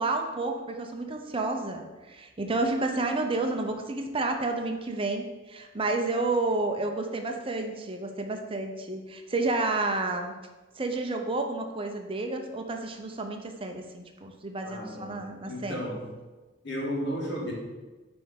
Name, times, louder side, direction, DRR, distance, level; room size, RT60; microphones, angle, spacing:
voice 1, 0.0-10.3 10.7-15.8, right 2 dB, 25° right, 4 dB, 0.7 m, -30 dB
voice 2, 14.6-15.2 15.5-16.0 16.6-17.5, equal, 60° left, -2 dB, 2.0 m, -33 dB
7.5 x 3.5 x 6.4 m, 1.2 s
head